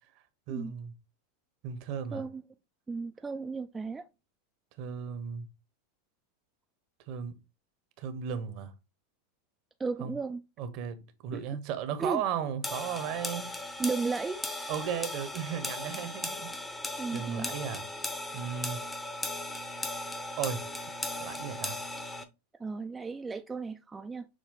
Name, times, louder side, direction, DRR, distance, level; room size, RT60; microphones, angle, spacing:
voice 1, 0.5-0.9 1.6-2.2 4.8-5.5 7.1-7.3 8.0-8.7 10.0-10.1 10.6-13.6 14.7-16.5 17.1-17.8 18.3-18.8 20.4-20.6 21.2-21.8, right 8 dB, 55° right, 0.9 m, -35 dB
voice 2, 2.1-2.4 2.9-4.1 9.8-10.4 11.3-11.4 12.0-12.2 13.8-14.4 17.0-17.5 22.6-24.3, right 4 dB, 15° right, 0.4 m, -34 dB
sound 1, 12.6-22.2, left 1 dB, 10° left, 0.8 m, -37 dB
6.4 x 2.2 x 3.7 m
hypercardioid pair, 100°, 0 cm